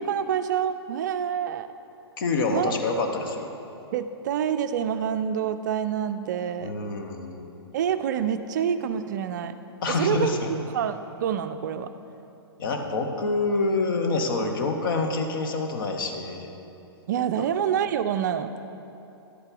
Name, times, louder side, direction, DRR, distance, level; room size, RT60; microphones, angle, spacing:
voice 1, 0.0-1.7 2.5-2.7 3.9-6.8 7.7-9.5 9.9-10.4 10.7-11.9 17.1-18.5, right 8 dB, 45° right, 9 dB, 0.4 m, -27 dB
voice 2, 2.2-3.5 6.6-7.5 9.8-10.5 12.6-16.5, left 3 dB, 55° left, 4 dB, 1.0 m, -26 dB
11.5 x 7.9 x 3.9 m, 2.8 s
figure-of-eight pair, 110°, 14 cm